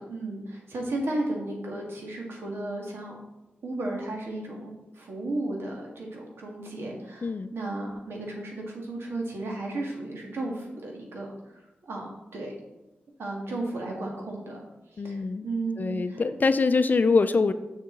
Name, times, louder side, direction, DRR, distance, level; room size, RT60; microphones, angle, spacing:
voice 1, 0.0-3.2 3.6-11.3 11.8-12.6 13.2-14.6 14.9-16.2, right 2 dB, 80° right, 0 dB, 1.8 m, -34 dB
voice 2, 7.2-7.5 15.0-15.5 15.8-17.5, left 4 dB, 50° left, 11 dB, 0.5 m, -24 dB
6.7 x 6.4 x 3.9 m, 0.97 s
cardioid pair, 70°, 4 cm